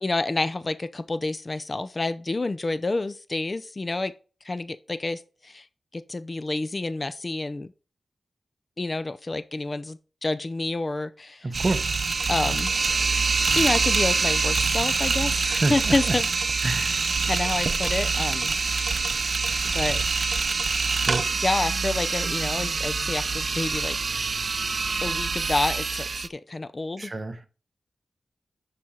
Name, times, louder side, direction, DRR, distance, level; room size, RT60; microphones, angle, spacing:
voice 1, 0.0-4.1 4.4-5.7 5.9-7.7 8.8-11.5 12.3-12.7 13.6-16.3 17.2-18.6 19.6-20.4 21.3-24.0 25.0-27.1, left 2 dB, 30° left, 0.5 m, -29 dB
voice 2, 11.4-12.0 15.4-16.2 16.6-17.0 21.0-21.3 27.0-27.5, right 2 dB, 35° right, 1.1 m, -28 dB
sound 1, 11.5-26.3, right 4 dB, 55° right, 0.6 m, -25 dB
11.0 x 4.3 x 3.8 m
wide cardioid pair, 115°, 0 cm